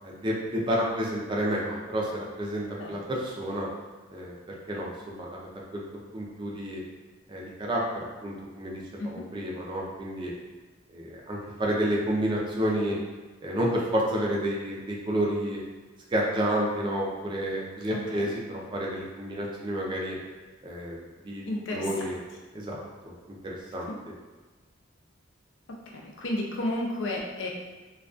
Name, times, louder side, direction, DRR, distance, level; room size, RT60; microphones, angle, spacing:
voice 1, 0.0-3.7 4.1-4.3 4.7-5.8 6.1-6.8 7.3-8.8 9.1-10.3 10.9-13.0 13.4-15.6 16.1-20.2 20.6-21.0 21.2-21.4 21.7-22.2 22.5-23.1 23.4-23.9, equal, 25° right, -3 dB, 0.4 m, -30 dB
voice 2, 17.9-18.3 21.5-22.1 23.9-24.0 25.9-27.5, left 1 dB, 70° left, -1 dB, 0.4 m, -32 dB
2.3 x 2.2 x 2.4 m, 1.3 s
head